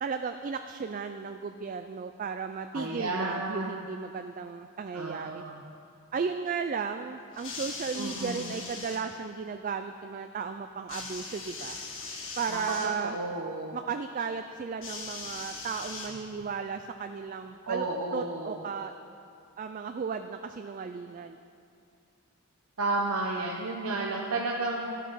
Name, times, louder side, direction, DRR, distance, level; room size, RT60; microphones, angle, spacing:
voice 1, 0.0-5.4 6.1-11.8 12.4-13.2 13.7-18.9 19.6-21.4, right 5 dB, 35° right, 7 dB, 0.3 m, -35 dB
voice 2, 2.7-3.8 4.9-5.6 7.9-8.5 12.5-12.6 13.0-13.8 17.7-18.6 22.8-24.9, right 2 dB, 75° right, -1 dB, 0.9 m, -32 dB
sound 1, 7.3-9.0 10.9-12.9 14.8-16.5 17.5-17.6, left 4 dB, 55° left, 1.7 m, -40 dB
13.0 x 8.3 x 5.5 m, 2.5 s
head